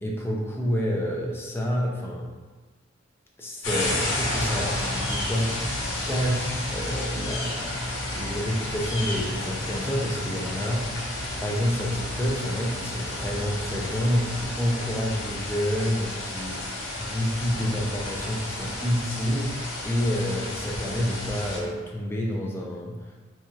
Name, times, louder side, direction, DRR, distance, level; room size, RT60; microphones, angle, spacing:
voice 1, 0.0-2.3 3.4-5.7 6.1-16.6 17.0-19.6 19.8-23.1, equal, 10° left, -2 dB, 0.5 m, -28 dB
sound 1, 3.6-21.6, left 1 dB, 85° left, 0.9 m, -31 dB
4.6 x 2.4 x 2.9 m, 1.3 s
head